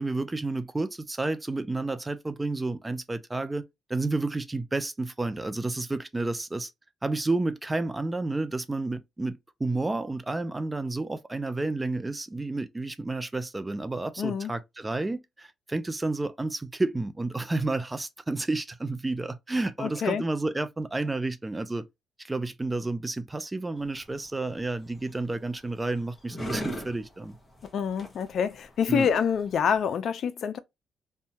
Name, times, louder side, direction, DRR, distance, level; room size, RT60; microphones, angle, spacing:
voice 1, 0.0-3.6 3.9-6.7 7.0-21.8 22.2-27.4 28.9-29.1, right 2 dB, 15° right, 0.4 m, -30 dB
voice 2, 14.2-14.5 19.8-20.2 27.7-30.6, left 7 dB, 60° left, 0.4 m, -27 dB
sound 1, 23.8-29.8, equal, 20° left, 1.1 m, -41 dB
2.8 x 2.2 x 2.7 m
cardioid pair, 90°, 0 cm